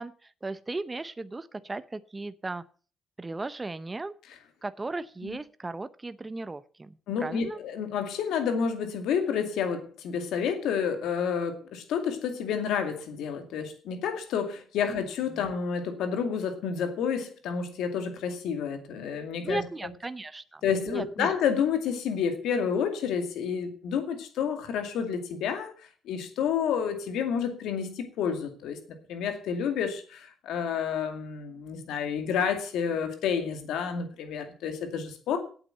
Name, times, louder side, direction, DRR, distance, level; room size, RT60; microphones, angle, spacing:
voice 1, 0.0-2.6 3.2-4.1 4.6-7.6 14.9-15.0 15.3-15.5 19.4-20.6 20.9-21.3, right 2 dB, 20° right, 12 dB, 0.7 m, -36 dB
voice 2, 7.1-19.6 20.6-28.8 29.1-35.4, left 7 dB, 85° left, 6 dB, 2.3 m, -30 dB
8.6 x 8.3 x 7.7 m, 0.41 s
cardioid pair, 90°, 0 cm